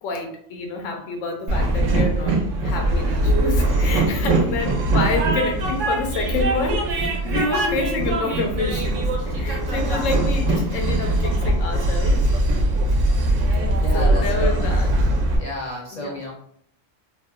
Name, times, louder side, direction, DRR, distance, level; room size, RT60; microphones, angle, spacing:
voice 1, 0.0-12.2 13.9-14.9 15.9-16.1, left 3 dB, 85° left, 3 dB, 0.9 m, -28 dB
Train, 1.5-15.4, right 1 dB, 80° right, 0.9 m, -21 dB
voice 2, 13.4-14.7 15.4-16.3, left 1 dB, 45° left, -3 dB, 0.6 m, -32 dB
2.9 x 2.0 x 2.2 m, 0.64 s
omnidirectional pair, 1.3 m